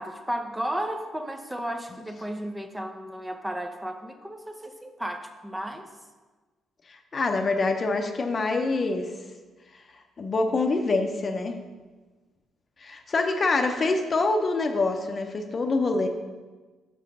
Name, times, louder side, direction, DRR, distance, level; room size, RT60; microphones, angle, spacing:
voice 1, 0.0-5.9, equal, 10° right, 5 dB, 0.7 m, -34 dB
voice 2, 7.1-9.1 10.2-11.5 12.8-16.1, left 3 dB, 40° left, 5 dB, 0.8 m, -25 dB
5.8 x 5.7 x 6.1 m, 1.3 s
cardioid pair, 90°, 0 cm